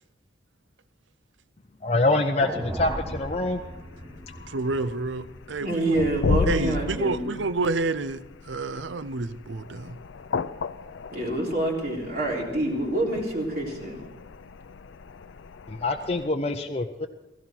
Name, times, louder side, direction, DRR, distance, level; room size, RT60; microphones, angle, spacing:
voice 1, 1.8-3.6 4.3-4.6 15.7-17.1, left 2 dB, 35° left, 0.6 m, -25 dB
sound 1, 2.4-6.7, right 1 dB, 25° right, 2.6 m, -37 dB
sound 2, 2.6-16.3, left 4 dB, 80° left, 0.5 m, -35 dB
voice 2, 4.5-6.0 6.5-8.2 8.5-10.0, right 3 dB, 80° right, 0.6 m, -29 dB
voice 3, 5.6-7.4 11.1-14.0, right 1 dB, 50° right, 3.6 m, -27 dB
16.5 x 15.5 x 4.5 m
head